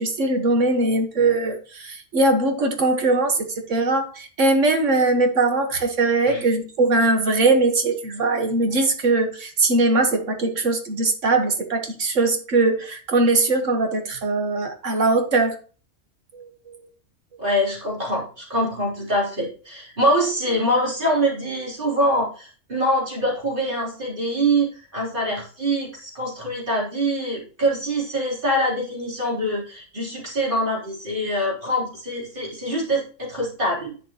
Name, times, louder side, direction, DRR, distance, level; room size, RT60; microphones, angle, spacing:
voice 1, 0.0-15.6 16.3-16.9, right 2 dB, 75° right, 5 dB, 1.8 m, -21 dB
voice 2, 17.4-33.9, equal, 40° right, -4 dB, 3.7 m, -24 dB
10.5 x 6.1 x 3.0 m, 0.38 s
omnidirectional pair, 1.3 m